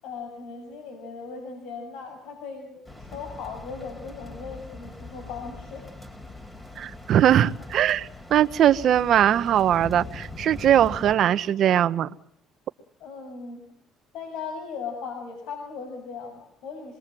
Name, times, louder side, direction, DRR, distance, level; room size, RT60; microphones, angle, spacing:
voice 1, 0.0-5.9 13.0-13.6 14.1-17.0, left 5 dB, 75° left, 4 dB, 7.0 m, -38 dB
sound 1, 2.9-11.1, left 2 dB, 10° left, 4.8 m, -41 dB
voice 2, 6.8-12.1, right 10 dB, 60° right, 13 dB, 1.1 m, -20 dB
27.5 x 22.0 x 7.7 m, 0.67 s
cardioid pair, 105°, 0 cm